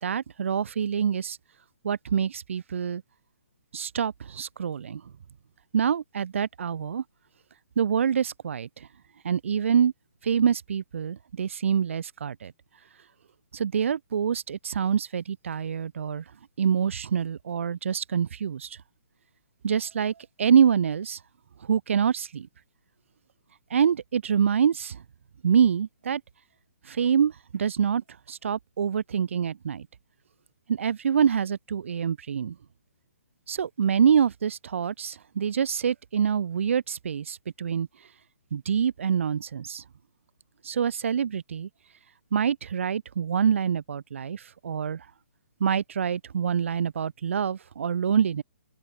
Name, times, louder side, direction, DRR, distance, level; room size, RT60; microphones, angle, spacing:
voice 1, 0.0-1.4 1.8-3.0 3.7-5.0 5.7-7.0 7.8-8.7 9.2-9.9 10.2-12.5 13.5-16.2 16.6-18.7 19.6-20.1 20.4-21.2 21.7-22.5 23.7-25.0 25.4-26.2 26.9-29.9 30.7-32.5 33.5-37.9 38.5-39.8 40.6-41.7 42.3-45.0 45.6-48.4, right 7 dB, 60° right, 4.8 m, -25 dB
open air
hypercardioid pair, 160°, 8 cm